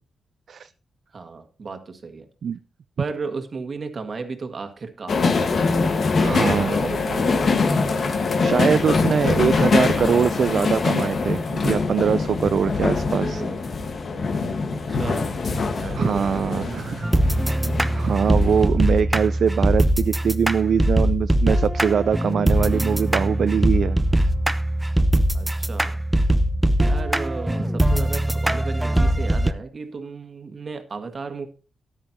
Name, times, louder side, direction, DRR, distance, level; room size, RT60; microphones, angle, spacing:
voice 1, 1.1-2.2 3.0-5.7 6.2-7.8 13.0-13.6 14.7-15.3 15.8-16.9 25.3-26.0 26.8-31.5, right 4 dB, 50° right, 7 dB, 1.6 m, -34 dB
sound 1, 5.1-18.7, left 4 dB, 55° left, 1.4 m, -23 dB
voice 2, 6.2-6.8 8.4-13.4 15.9-17.0 17.9-24.0, right 7 dB, 65° right, 12 dB, 0.4 m, -22 dB
sound 2, 17.0-29.5, right 1 dB, 10° right, 0.7 m, -21 dB
13.5 x 10.0 x 2.8 m, 0.35 s
cardioid pair, 80°, 0 cm